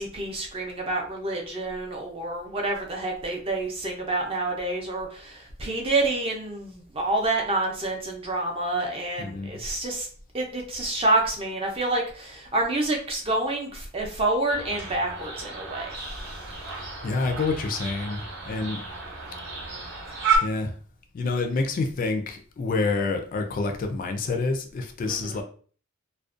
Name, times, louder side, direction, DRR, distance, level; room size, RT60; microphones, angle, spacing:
voice 1, 0.0-10.1 10.3-16.5 25.1-25.4, right 2 dB, 30° right, 1 dB, 0.5 m, -28 dB
voice 2, 9.2-9.5 17.0-18.8 20.4-20.7 21.1-25.4, left 3 dB, 40° left, 5 dB, 0.3 m, -27 dB
sound 1, 14.5-20.4, right 5 dB, 55° right, 0.8 m, -32 dB
2.4 x 2.1 x 2.4 m, 0.43 s
head